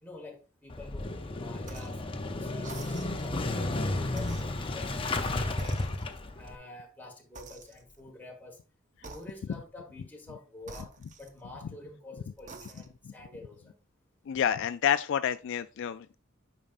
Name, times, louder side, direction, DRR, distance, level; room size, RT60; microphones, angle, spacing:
voice 1, 0.0-2.0 2.3-3.8 4.1-4.4 4.7-5.9 6.4-8.6 9.0-13.8, left 2 dB, 10° left, 1.6 m, -48 dB
Motorcycle / Engine starting, 0.7-6.6, left 2 dB, 25° left, 0.6 m, -33 dB
sound 1, 1.6-2.1 2.6-3.4 4.1-5.2 5.6-6.4 7.3-8.1 9.0-9.7 10.6-11.7 12.3-13.1, right 4 dB, 40° right, 0.8 m, -49 dB
voice 2, 14.3-16.2, left 9 dB, 60° left, 0.3 m, -28 dB
8.6 x 5.3 x 2.5 m
head